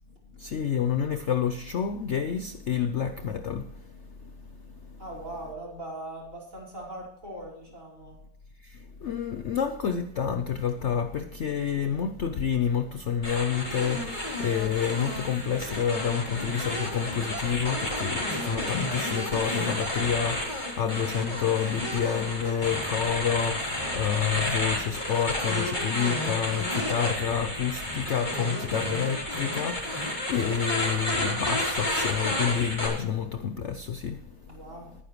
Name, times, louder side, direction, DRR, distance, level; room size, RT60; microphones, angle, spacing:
voice 1, 0.3-5.0 8.6-34.7, left 8 dB, 60° left, 0.8 m, -29 dB
voice 2, 5.0-8.2 34.5-35.0, right 1 dB, 50° right, 5.7 m, -40 dB
sound 1, 13.2-32.9, left 1 dB, 25° left, 3.8 m, -31 dB
20.5 x 9.9 x 3.1 m
omnidirectional pair, 1.8 m